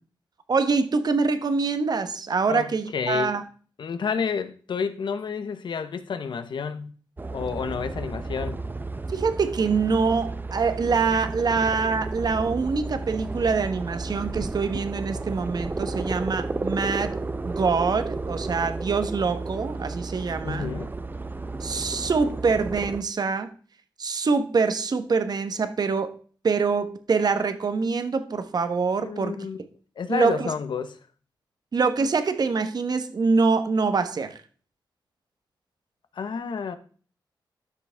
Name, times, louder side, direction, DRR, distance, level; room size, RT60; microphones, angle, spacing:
voice 1, 0.5-3.4 9.1-17.2 17.4-20.7 21.6-23.5 24.0-26.2 26.4-29.5 30.1-30.5 31.7-34.4, right 4 dB, 55° right, 1.2 m, -25 dB
voice 2, 2.5-3.3 3.8-6.9 7.3-8.6 20.4-20.9 29.0-29.6 30.0-31.0 36.1-36.8, left 6 dB, 70° left, 1.0 m, -30 dB
sound 1, 7.2-23.0, right 3 dB, 25° right, 0.7 m, -32 dB
12.0 x 6.2 x 3.5 m
cardioid pair, 80°, 8 cm